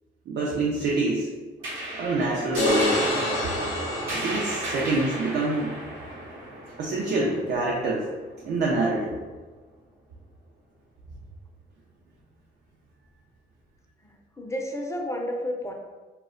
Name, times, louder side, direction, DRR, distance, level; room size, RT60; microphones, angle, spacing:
voice 1, 0.3-1.3 1.9-3.0 4.1-5.7 6.8-8.1 8.4-9.2, right 2 dB, 60° right, -4 dB, 0.5 m, -26 dB
sound 1, 1.6-8.4, right 1 dB, 85° right, 0.9 m, -33 dB
sound 2, 2.6-4.9, left 2 dB, 75° left, 0.6 m, -28 dB
voice 2, 14.0-15.7, left 1 dB, 15° left, 1 dB, 0.4 m, -31 dB
2.2 x 2.0 x 3.6 m, 1.3 s
cardioid pair, 90°, 20 cm